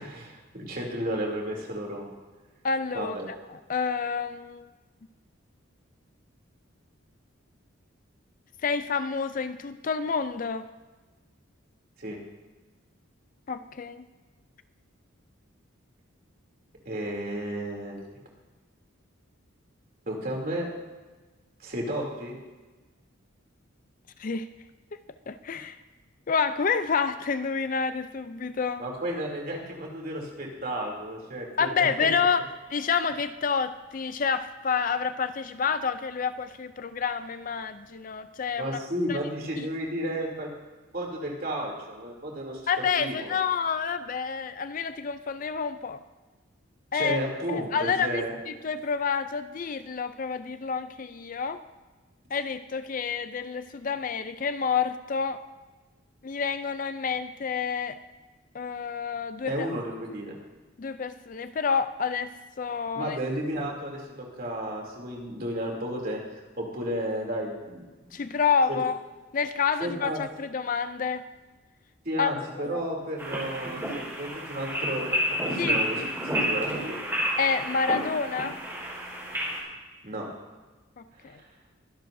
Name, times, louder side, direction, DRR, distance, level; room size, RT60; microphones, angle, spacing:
voice 1, 0.0-2.1 2.9-3.3 12.0-12.2 16.8-17.9 20.1-20.7 21.6-22.3 28.8-32.3 38.6-40.5 40.9-42.6 43.0-43.4 46.9-48.3 59.5-60.4 62.9-68.2 68.7-68.8 69.8-70.2 72.0-76.0 76.4-77.0 80.0-80.3 81.2-81.4, right 1 dB, 45° right, -1 dB, 2.9 m, -33 dB
voice 2, 2.6-3.1 3.7-4.7 8.6-10.6 13.5-14.0 24.2-24.5 25.3-25.8 26.3-28.8 31.6-32.4 32.7-38.8 39.1-39.2 39.6-39.7 42.7-46.0 46.9-47.2 47.5-51.6 52.3-55.4 56.2-58.0 58.5-59.5 60.8-62.3 62.6-63.2 68.1-69.0 69.3-71.2 72.2-72.8 75.6-76.1 77.4-78.6 81.0-81.4, left 6 dB, 40° left, 11 dB, 0.4 m, -28 dB
sound 1, 73.2-79.6, equal, 10° right, 4.3 m, -30 dB
23.5 x 11.0 x 2.7 m, 1.3 s
head